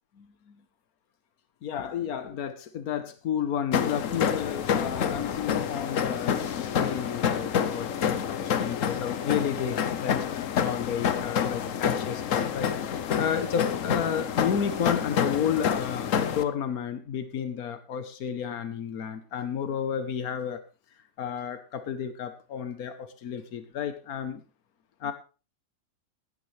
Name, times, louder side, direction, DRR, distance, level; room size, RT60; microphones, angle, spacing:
voice 1, 0.2-0.6 1.6-6.4 6.8-20.6 21.2-24.4 25.0-25.1, left 8 dB, 85° left, 10 dB, 1.5 m, -32 dB
sound 1, 3.7-16.4, left 8 dB, 65° left, 1.2 m, -28 dB
15.0 x 11.5 x 3.3 m, 0.34 s
omnidirectional pair, 1.5 m